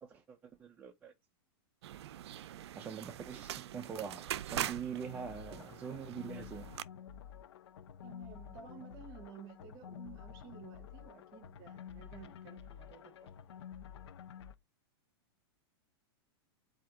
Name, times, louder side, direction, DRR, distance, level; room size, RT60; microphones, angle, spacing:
voice 1, 0.0-1.1 2.7-6.7, right 7 dB, 10° right, 0.4 m, -44 dB
sound 1, 1.8-6.8, right 12 dB, 85° right, 0.4 m, -43 dB
sound 2, 5.0-14.5, left 8 dB, 85° left, 0.6 m, -50 dB
voice 2, 8.0-13.6, right 8 dB, 30° right, 0.9 m, -54 dB
4.3 x 2.8 x 3.6 m
supercardioid pair, 165°, 14 cm